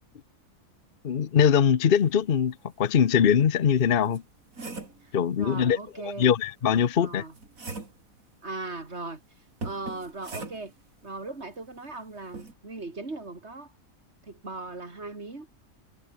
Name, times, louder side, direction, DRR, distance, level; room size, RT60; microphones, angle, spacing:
voice 1, 1.0-4.2 5.1-5.8 6.2-7.2, left 8 dB, 45° left, 1.0 m, -22 dB
sound 1, 2.8-2.9 3.4-5.1 6.8-8.1 9.6-10.8 12.3-12.5, right 3 dB, 75° right, 4.0 m, -40 dB
voice 2, 5.0-6.3 7.0-7.3 8.4-9.2 9.6-10.7 11.0-13.7 14.3-15.5, right 3 dB, 50° right, 3.5 m, -38 dB
omnidirectional pair, 1.4 m